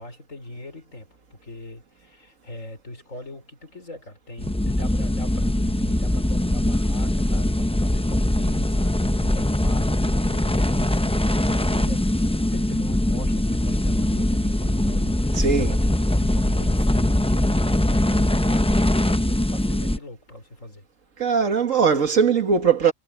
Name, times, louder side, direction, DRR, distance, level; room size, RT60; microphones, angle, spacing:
voice 1, 0.0-20.8, left 1 dB, 80° left, 5.1 m, -42 dB
sound 1, 4.4-20.0, left 1 dB, 10° left, 0.3 m, -22 dB
voice 2, 15.3-15.8 21.2-22.9, right 6 dB, 80° right, 2.2 m, -20 dB
omnidirectional pair, 1.4 m